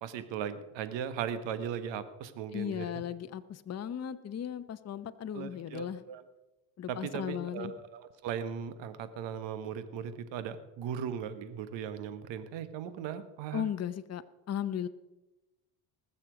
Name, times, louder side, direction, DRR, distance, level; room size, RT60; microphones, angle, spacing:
voice 1, 0.0-2.9 5.3-6.2 6.9-13.7, right 8 dB, 70° right, 11 dB, 1.4 m, -38 dB
voice 2, 2.5-6.0 6.8-7.7 13.5-14.9, left 9 dB, 35° left, 11 dB, 0.8 m, -36 dB
19.5 x 7.3 x 5.1 m, 1.0 s
supercardioid pair, 80°, 46 cm